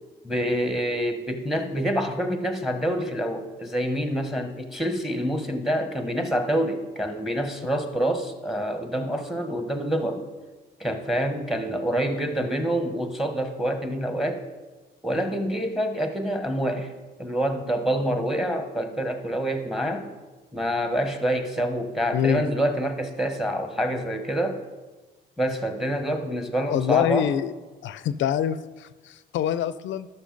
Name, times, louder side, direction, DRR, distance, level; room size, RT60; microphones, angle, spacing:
voice 1, 0.2-10.2 10.8-14.4 15.0-16.9 17.2-20.1 20.5-24.6 25.4-27.3, equal, ahead, 7 dB, 1.1 m, -27 dB
voice 2, 22.1-22.4 26.7-27.5 27.8-30.1, left 10 dB, 70° left, 15 dB, 0.4 m, -25 dB
12.5 x 5.8 x 3.9 m, 1.2 s
cardioid pair, 90°, 20 cm